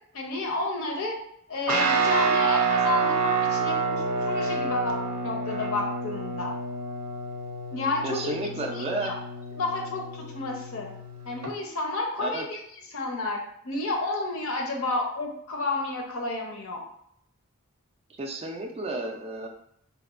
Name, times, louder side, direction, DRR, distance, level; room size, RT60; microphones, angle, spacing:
voice 1, 0.1-1.2 1.5-4.9 5.2-6.5 7.7-8.4 8.7-9.1 9.6-10.9 11.2-12.6 12.9-13.4 13.6-16.8, left 2 dB, 65° left, 1 dB, 0.6 m, -30 dB
Guitar, 1.7-11.5, right 4 dB, 90° right, 0.5 m, -28 dB
voice 2, 8.0-9.1 12.2-12.4 18.2-19.5, right 2 dB, 25° right, 2 dB, 0.3 m, -32 dB
4.0 x 2.2 x 2.4 m, 0.71 s
head